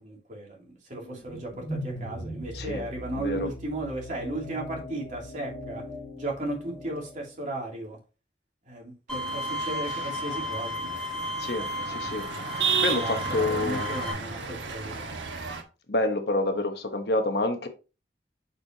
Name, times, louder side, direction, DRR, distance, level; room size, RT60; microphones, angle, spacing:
voice 1, 0.0-5.8 6.2-8.0 8.7-10.8 13.0-15.1, right 2 dB, 45° right, 2.9 m, -35 dB
sound 1, 1.0-7.3, equal, 30° left, 1.8 m, -40 dB
voice 2, 3.2-3.5 11.4-12.3 12.8-13.9 15.9-17.7, left 2 dB, 60° left, 1.2 m, -28 dB
Bowed string instrument, 9.1-14.1, left 1 dB, 5° left, 1.4 m, -34 dB
sound 2, 9.1-15.6, right 5 dB, 90° right, 1.4 m, -33 dB
7.3 x 6.4 x 2.9 m
head